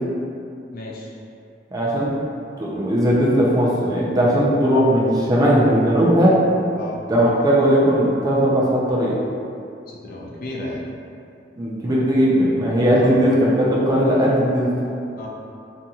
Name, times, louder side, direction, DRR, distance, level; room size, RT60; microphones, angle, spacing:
voice 1, 0.7-1.1 6.7-7.0 9.9-10.8 12.9-13.2 15.2-15.3, left 1 dB, 55° left, -3 dB, 0.4 m, -33 dB
voice 2, 1.7-2.1 2.6-6.4 7.1-9.1 11.6-14.7, equal, 20° right, -6 dB, 0.4 m, -18 dB
2.8 x 2.6 x 2.3 m, 2.5 s
head